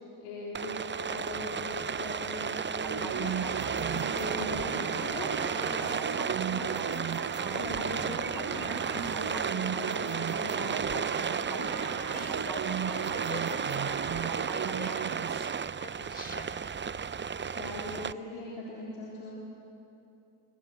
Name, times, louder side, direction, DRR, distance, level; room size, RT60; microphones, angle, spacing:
voice 1, 0.2-3.3 3.7-7.1 7.5-11.7 17.5-19.4, left 2 dB, 90° left, -5 dB, 4.0 m, -40 dB
Rain, 0.5-18.1, right 6 dB, 25° right, 0.6 m, -33 dB
sound 1, 2.8-15.5, right 8 dB, 45° right, 1.3 m, -37 dB
voice 2, 12.1-16.5, left 1 dB, 20° left, 7 dB, 4.2 m, -44 dB
25.5 x 25.0 x 7.8 m, 2.8 s
supercardioid pair, 55°, 49 cm